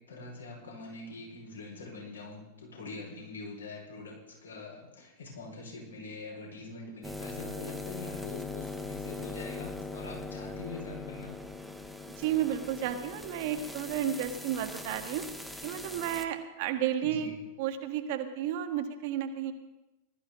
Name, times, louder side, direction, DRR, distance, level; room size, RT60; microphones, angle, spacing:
voice 1, 0.1-11.3 17.0-17.3, left 3 dB, 70° left, -3 dB, 5.1 m, -44 dB
sound 1, 7.0-16.2, left 3 dB, ahead, 1.2 m, -41 dB
voice 2, 12.2-15.2 15.6-17.3 17.6-19.5, right 10 dB, 50° right, 7 dB, 1.4 m, -32 dB
19.5 x 13.5 x 3.8 m, 1.0 s
figure-of-eight pair, 90°, 0 cm